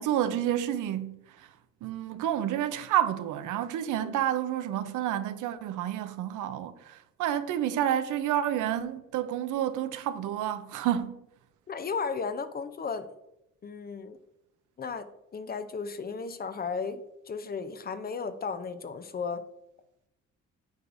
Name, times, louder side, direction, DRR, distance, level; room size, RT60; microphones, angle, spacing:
voice 1, 0.0-1.5 1.8-11.2, right 11 dB, 80° right, 0.6 m, -29 dB
voice 2, 11.7-13.1 13.6-14.2 14.8-15.1 15.3-17.0 17.3-19.4, left 5 dB, 30° left, 0.5 m, -34 dB
8.1 x 4.7 x 2.5 m
cardioid pair, 90°, 30 cm